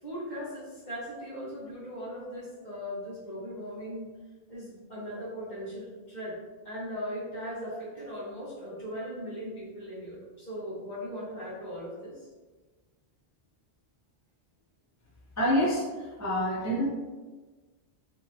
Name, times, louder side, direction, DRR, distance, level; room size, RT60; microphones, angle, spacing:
voice 1, 0.0-4.1 4.5-6.4 6.6-12.3, equal, 40° left, -8 dB, 1.6 m, -38 dB
voice 2, 15.4-16.9, equal, 20° left, -7 dB, 0.6 m, -27 dB
4.3 x 3.1 x 2.8 m, 1.3 s
omnidirectional pair, 1.1 m